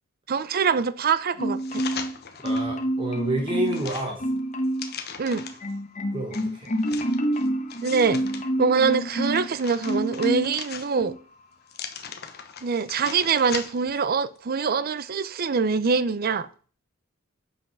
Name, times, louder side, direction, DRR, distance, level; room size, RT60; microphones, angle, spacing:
voice 1, 0.3-1.8 5.2-5.4 7.8-8.2 8.6-11.1 12.6-16.5, right 5 dB, 50° right, 0.5 m, -24 dB
Marimba xylophone, 1.4-2.2 2.4-3.9 4.2-4.9 5.3-9.5 9.8-10.6 10.9-11.2, right 1 dB, 35° left, 1.1 m, -28 dB
sound 1, 1.6-2.7 3.2-5.7 6.3-8.4 8.9-11.2 11.7-14.0 14.4-14.5, left 7 dB, 50° left, 1.0 m, -39 dB
voice 2, 2.4-4.2 6.1-6.7, right 1 dB, 25° right, 1.2 m, -29 dB
7.3 x 5.7 x 5.8 m
head